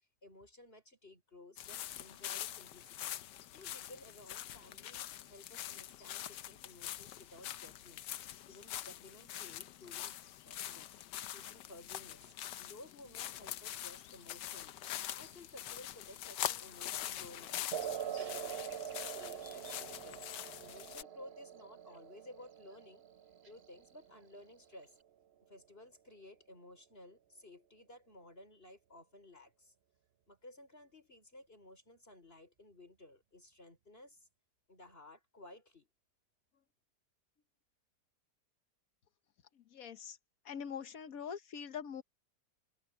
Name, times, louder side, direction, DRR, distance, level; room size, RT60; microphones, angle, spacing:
voice 1, 0.2-8.0 8.5-10.2 10.4-11.0 11.3-14.8 15.2-17.6 18.0-23.0 23.4-25.0 25.5-29.7 30.3-34.3 34.7-35.9, left 1 dB, 35° left, 5.9 m, -56 dB
sound 1, 1.6-21.0, left 12 dB, 90° left, 1.4 m, -44 dB
Buzz, 15.0-25.0, right 3 dB, 35° right, 2.5 m, -66 dB
sound 2, 17.7-24.7, right 9 dB, 75° right, 0.5 m, -44 dB
voice 2, 39.6-40.2 40.4-42.0, left 7 dB, 60° left, 1.3 m, -43 dB
omnidirectional pair, 1.8 m